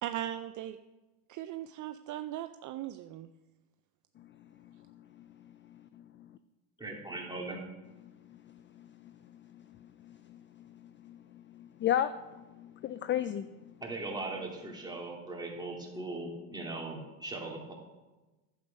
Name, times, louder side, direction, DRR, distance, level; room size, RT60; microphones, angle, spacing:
voice 1, 0.0-0.8 1.3-3.3, right 12 dB, 45° right, 10 dB, 0.5 m, -38 dB
voice 2, 5.7-6.3 8.3-9.1 9.5-13.7, left 10 dB, 30° left, 12 dB, 0.4 m, -36 dB
voice 3, 6.8-7.6 13.8-17.7, right 2 dB, 10° right, -2 dB, 2.8 m, -39 dB
11.0 x 7.9 x 5.3 m, 1.1 s
supercardioid pair, 105°, 42 cm